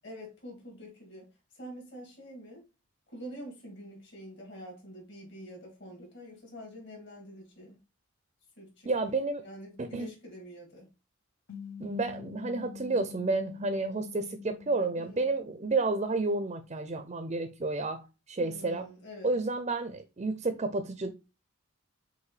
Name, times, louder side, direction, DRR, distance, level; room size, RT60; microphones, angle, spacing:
voice 1, 0.0-1.3 1.5-2.6 3.1-7.8 8.6-10.9 15.0-15.2 18.4-19.3, equal, 55° left, 2.3 m, -46 dB
voice 2, 8.9-9.4 9.8-10.1 11.8-18.0 18.3-18.9 19.2-21.1, right 3 dB, 30° right, 0.4 m, -31 dB
sound 1, 11.5-16.1, left 7 dB, 75° left, 0.7 m, -46 dB
6.5 x 2.6 x 3.1 m
head